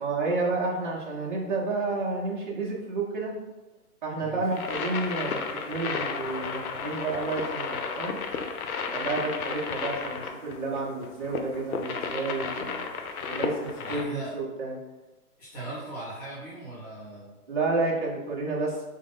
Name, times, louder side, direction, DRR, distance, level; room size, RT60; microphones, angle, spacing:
voice 1, 0.0-3.3 4.0-5.4 5.7-8.2 8.9-12.9 13.2-14.8 17.5-18.9, right 3 dB, 35° right, -5 dB, 0.6 m, -30 dB
sound 1, 4.5-14.0, left 5 dB, 70° left, 0.6 m, -33 dB
voice 2, 13.8-14.3 15.4-17.3, right 2 dB, 25° left, -10 dB, 1.0 m, -39 dB
3.8 x 2.4 x 3.5 m, 1.1 s
hypercardioid pair, 175°, 45 cm